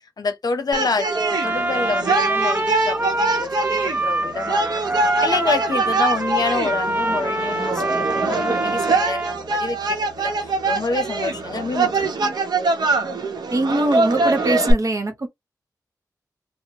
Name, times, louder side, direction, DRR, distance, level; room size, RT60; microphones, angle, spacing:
voice 1, 0.2-12.4, left 4 dB, 70° left, 0.6 m, -28 dB
sound 1, 0.7-14.7, right 3 dB, 85° right, 0.7 m, -24 dB
Trumpet, 1.0-9.4, right 2 dB, 30° right, 0.6 m, -24 dB
sound 2, 1.5-12.0, left 3 dB, 10° right, 1.0 m, -48 dB
voice 2, 13.5-15.3, right 2 dB, 50° right, 0.9 m, -22 dB
2.9 x 2.0 x 2.8 m
cardioid pair, 45°, 7 cm